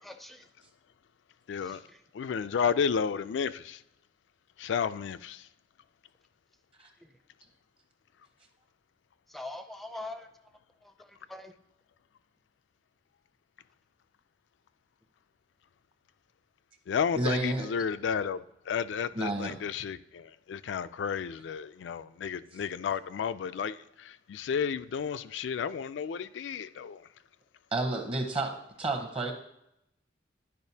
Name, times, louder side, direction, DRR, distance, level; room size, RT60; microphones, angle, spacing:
voice 1, 0.0-0.5 1.6-2.0 7.0-7.1 9.3-10.3 10.8-11.5, left 2 dB, ahead, 0.4 m, -43 dB
voice 2, 1.5-1.8 2.1-3.8 4.6-5.5 16.9-27.1, left 6 dB, 75° left, 0.3 m, -32 dB
voice 3, 17.1-17.7 19.1-19.5 27.7-29.3, right 2 dB, 30° right, 0.8 m, -31 dB
11.0 x 5.0 x 2.7 m
head